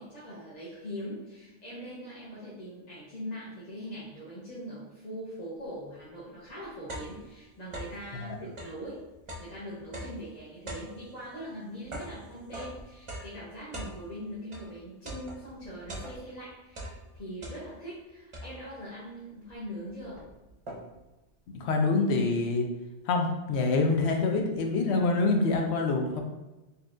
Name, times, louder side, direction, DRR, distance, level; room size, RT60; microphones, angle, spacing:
voice 1, 0.0-9.0 9.4-20.2, equal, 40° left, -8 dB, 0.8 m, -42 dB
sound 1, 6.0-6.1 6.4-8.1 8.5-14.7 15.0-16.4 16.7-17.9 18.3-18.9 19.5-19.6 19.8-21.1, right 1 dB, 35° right, 0.5 m, -42 dB
voice 2, 21.5-22.7 23.1-26.2, left 3 dB, 70° left, 3 dB, 0.8 m, -26 dB
4.2 x 2.8 x 2.5 m, 1.0 s
omnidirectional pair, 1.2 m